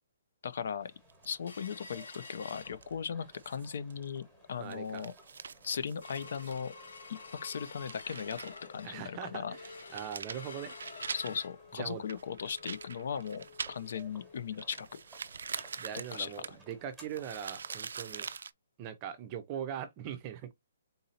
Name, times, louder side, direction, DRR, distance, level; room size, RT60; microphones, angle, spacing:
voice 1, 0.4-0.9 1.2-5.1 5.6-6.7 7.4-9.5 11.1-15.0 16.1-16.3, left 7 dB, 50° left, 0.5 m, -38 dB
sound 1, 0.8-18.4, right 2 dB, ahead, 1.2 m, -60 dB
sound 2, 1.1-1.7 2.1-2.5 2.8-2.9 3.3-4.2 4.6-6.6 7.0-7.1 7.7-8.7 9.0-9.1 9.6-11.4 12.1-14.1 14.5-18.5, right 5 dB, 75° right, 0.3 m, -44 dB
sound 3, 1.5-3.3 3.7-3.8 4.2-4.5 5.0-5.1 5.4-16.0 16.3-16.4 16.8-16.9 17.5-17.6, left 4 dB, 85° left, 2.3 m, -50 dB
voice 2, 4.6-5.0 8.8-10.7 11.8-12.0 15.8-18.3 18.8-20.5, right 9 dB, 20° right, 0.6 m, -41 dB
3.9 x 2.7 x 4.1 m
hypercardioid pair, 170°, 0 cm